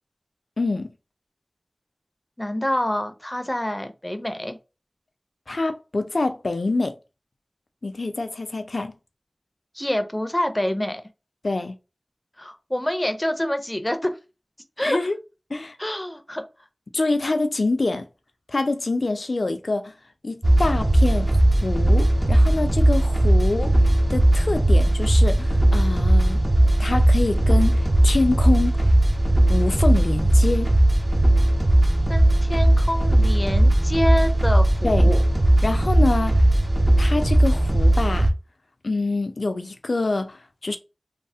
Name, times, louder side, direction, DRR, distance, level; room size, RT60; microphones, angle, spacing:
voice 1, 0.6-0.9 5.5-7.0 7.8-8.9 11.4-11.8 14.8-15.2 15.5-15.8 16.9-18.1 18.5-19.9 20.2-23.8 24.1-26.4 26.8-28.9 29.5-30.7 34.8-35.1 35.6-36.5 37.0-38.3 38.8-40.8, left 2 dB, 90° left, 0.4 m, -25 dB
voice 2, 2.4-4.6 9.7-11.0 12.4-14.2 14.8-15.0 15.8-16.4 32.1-35.2, left 1 dB, 20° left, 0.4 m, -26 dB
sound 1, 20.4-38.3, right 1 dB, 35° right, 0.5 m, -18 dB
3.1 x 2.0 x 2.7 m
wide cardioid pair, 50°, 0 cm